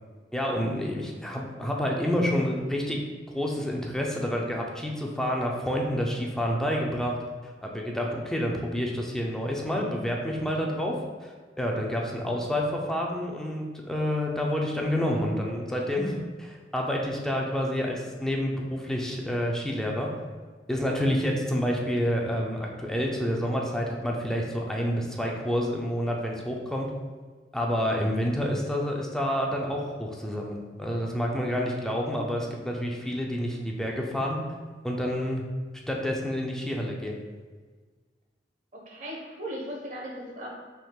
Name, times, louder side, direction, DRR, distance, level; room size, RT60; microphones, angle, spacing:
voice 1, 0.3-3.0 3.3-7.2 7.6-11.0 11.2-11.3 11.6-20.1 20.7-26.9 27.5-34.4 34.8-35.4 35.9-37.1, equal, 5° left, -1 dB, 0.5 m, -28 dB
voice 2, 38.9-40.5, equal, 45° right, -3 dB, 1.2 m, -37 dB
5.4 x 3.7 x 2.4 m, 1.5 s
head